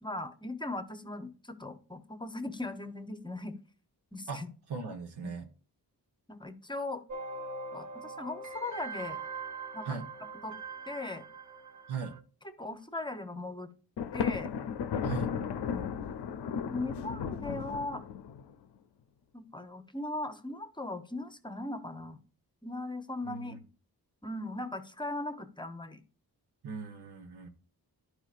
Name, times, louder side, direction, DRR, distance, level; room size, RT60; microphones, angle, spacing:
voice 1, 0.0-3.6 4.1-4.5 5.2-5.3 6.3-7.0 7.7-9.2 9.7-10.0 10.4-10.6 10.9-11.3 12.4-13.7 14.1-14.5 15.6-16.1 16.7-18.0 19.3-22.2 22.6-23.6 24.2-26.0, left 2 dB, 10° left, 0.7 m, -39 dB
voice 2, 4.7-5.5 9.8-10.1 11.9-12.1 15.0-15.3 23.2-23.6 26.6-27.5, right 5 dB, 80° right, 1.2 m, -38 dB
sound 1, 7.1-12.2, right 3 dB, 45° right, 0.8 m, -42 dB
Thunder, 14.0-18.5, left 7 dB, 85° left, 0.6 m, -35 dB
12.0 x 4.9 x 2.5 m
wide cardioid pair, 110°, 39 cm